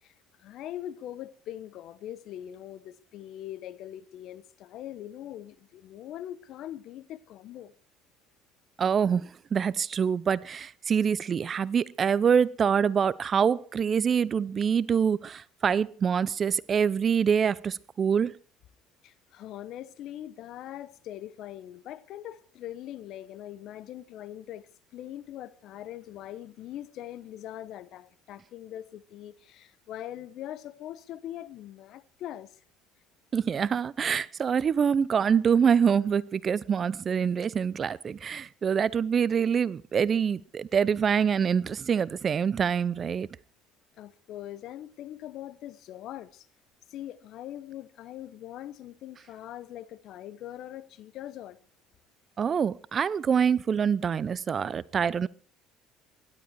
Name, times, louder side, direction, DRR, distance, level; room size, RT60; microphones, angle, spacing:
voice 1, 0.0-7.7 19.0-32.6 44.0-46.5 46.9-51.6, left 12 dB, 65° left, 0.9 m, -42 dB
voice 2, 8.8-18.3 33.3-43.3 52.4-55.3, right 7 dB, 40° right, 0.6 m, -25 dB
17.0 x 12.0 x 4.7 m
supercardioid pair, 95°, 0 cm